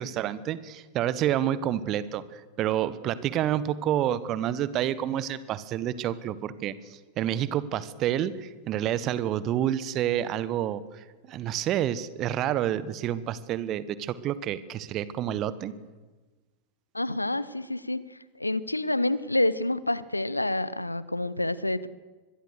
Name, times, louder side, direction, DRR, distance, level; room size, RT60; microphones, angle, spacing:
voice 1, 0.0-6.7 7.2-15.7, right 11 dB, 35° right, 16 dB, 1.3 m, -29 dB
voice 2, 16.9-21.9, left 2 dB, 85° left, 18 dB, 0.9 m, -28 dB
24.5 x 21.5 x 6.6 m, 1.3 s
figure-of-eight pair, 90°, 0 cm